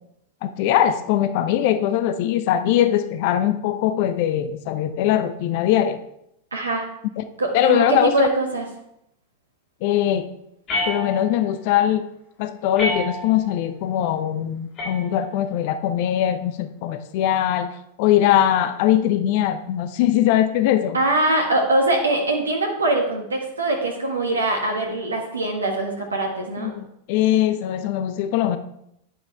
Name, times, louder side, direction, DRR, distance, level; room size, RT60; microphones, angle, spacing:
voice 1, 0.4-6.0 7.2-7.3 7.5-8.3 9.8-10.3 10.9-12.1 12.4-21.0 26.6-28.6, left 11 dB, 50° left, 11 dB, 0.7 m, -21 dB
voice 2, 6.5-6.8 7.4-8.7 20.9-26.7, right 2 dB, 75° right, 2 dB, 1.6 m, -22 dB
sound 1, 10.7-11.6 12.8-13.6 14.8-15.6, left 1 dB, 30° left, 3.6 m, -29 dB
12.0 x 9.7 x 3.4 m, 0.77 s
figure-of-eight pair, 90°, 0 cm